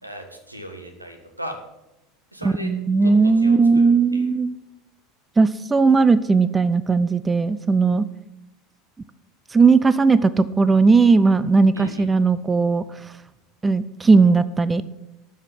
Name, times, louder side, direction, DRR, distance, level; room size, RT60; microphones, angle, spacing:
voice 1, 0.0-1.6 2.3-2.7 3.0-4.3 11.7-12.1, equal, 90° right, 6 dB, 1.4 m, -37 dB
voice 2, 2.4-4.5 5.4-8.1 9.5-12.8 13.6-14.8, right 4 dB, 20° right, 16 dB, 0.4 m, -17 dB
13.0 x 5.1 x 7.5 m, 0.91 s
figure-of-eight pair, 75°, 0 cm